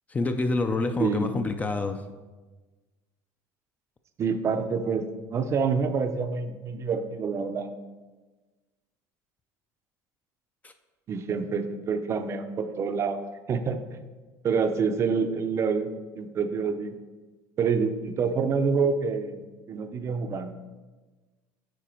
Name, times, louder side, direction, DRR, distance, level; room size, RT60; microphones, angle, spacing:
voice 1, 0.1-2.1 10.6-10.7, left 3 dB, 15° left, 8 dB, 0.4 m, -27 dB
voice 2, 1.0-1.3 4.2-7.8 11.1-13.2 13.5-14.0 14.4-15.9 16.1-16.9 17.6-19.4 19.7-20.5, right 5 dB, 30° right, 8 dB, 0.5 m, -27 dB
9.0 x 4.6 x 4.4 m, 1.3 s
cardioid pair, 135°, 9 cm